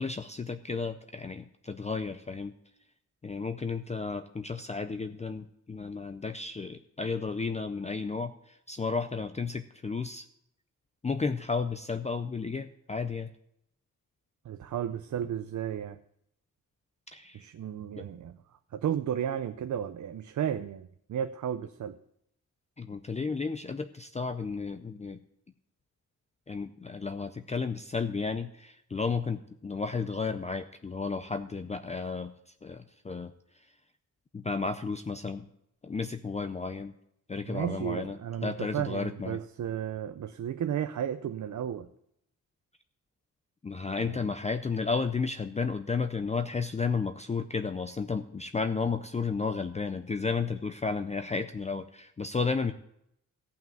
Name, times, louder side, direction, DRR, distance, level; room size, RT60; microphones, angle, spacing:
voice 1, 0.0-2.5 3.2-8.3 8.7-10.2 11.0-13.3 17.1-17.4 18.0-18.1 22.8-25.2 26.5-32.3 32.6-33.3 34.3-35.5 35.8-36.9 37.3-39.4 43.6-52.7, left 4 dB, 20° left, 9 dB, 0.5 m, -33 dB
voice 2, 14.5-16.0 17.3-18.3 18.7-22.0 37.5-41.9 44.0-44.3, right 9 dB, 65° right, 9 dB, 0.6 m, -33 dB
15.0 x 5.8 x 9.1 m, 0.74 s
wide cardioid pair, 175°, 33 cm